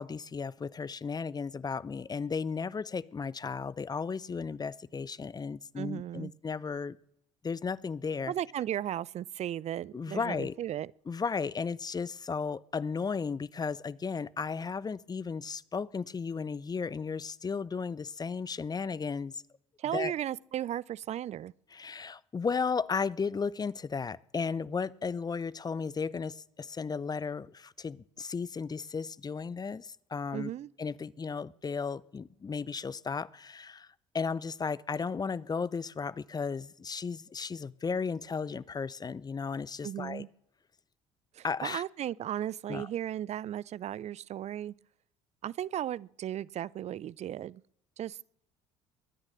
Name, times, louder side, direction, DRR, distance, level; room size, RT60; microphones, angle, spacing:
voice 1, 0.0-7.0 7.4-8.3 9.9-10.5 11.1-19.4 19.9-20.1 21.7-30.5 30.8-33.9 34.1-40.2 41.4-41.8 42.7-42.9, left 5 dB, 25° left, 0.7 m, -34 dB
voice 2, 5.8-6.3 8.3-10.9 19.8-21.5 30.3-30.7 39.8-40.3 41.3-44.7 45.4-47.6 48.0-48.2, right 11 dB, 45° right, 0.5 m, -35 dB
22.0 x 9.7 x 6.4 m
hypercardioid pair, 60°, 16 cm